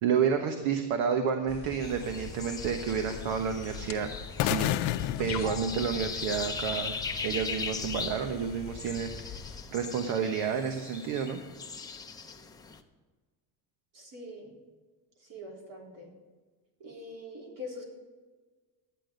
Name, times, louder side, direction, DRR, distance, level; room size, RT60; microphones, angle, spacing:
voice 1, 0.0-4.1 4.4-4.7 5.2-6.9 7.2-9.1 9.7-11.4, right 7 dB, 70° right, 6 dB, 1.3 m, -30 dB
sound 1, 1.5-9.6, left 6 dB, 35° left, 1.0 m, -43 dB
sound 2, 1.8-12.8, left 5 dB, 10° left, 0.6 m, -40 dB
sound 3, 4.4-6.5, left 13 dB, 75° left, 0.7 m, -31 dB
voice 2, 13.9-14.6 15.2-16.1 16.8-17.8, left 1 dB, 40° right, -1 dB, 3.8 m, -43 dB
12.5 x 9.9 x 5.2 m, 1.3 s
cardioid pair, 155°, 48 cm